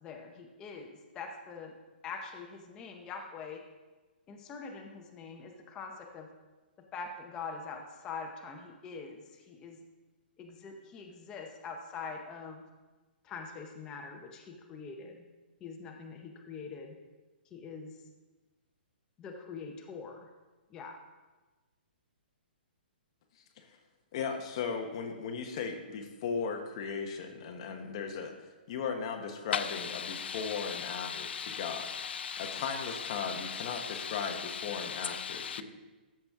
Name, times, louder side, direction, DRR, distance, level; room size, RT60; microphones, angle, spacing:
voice 1, 0.0-1.7 2.0-3.6 4.3-6.3 6.9-9.8 10.4-12.6 13.2-15.3 15.6-17.0 17.5-17.9 19.2-20.3 20.7-21.0, left 5 dB, 10° left, 0.6 m, -44 dB
voice 2, 24.1-28.3 28.7-31.9 32.4-35.6, left 5 dB, 30° left, 1.0 m, -37 dB
voice 3, 29.5-35.6, left 7 dB, 85° left, 0.3 m, -38 dB
13.5 x 6.0 x 3.6 m
hypercardioid pair, 170°, 6 cm